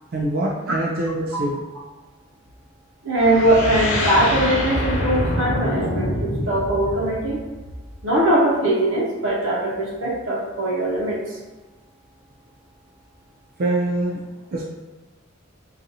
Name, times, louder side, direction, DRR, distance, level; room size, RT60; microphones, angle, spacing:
voice 1, 0.1-1.6 13.6-14.2 14.5-14.6, right 1 dB, 50° right, -2 dB, 0.4 m, -24 dB
voice 2, 3.0-7.4 8.0-11.4, right 1 dB, 85° right, -5 dB, 0.8 m, -21 dB
sound 1, 3.2-8.0, left 1 dB, 85° left, 0.8 m, -25 dB
4.0 x 2.5 x 2.7 m, 1.2 s
head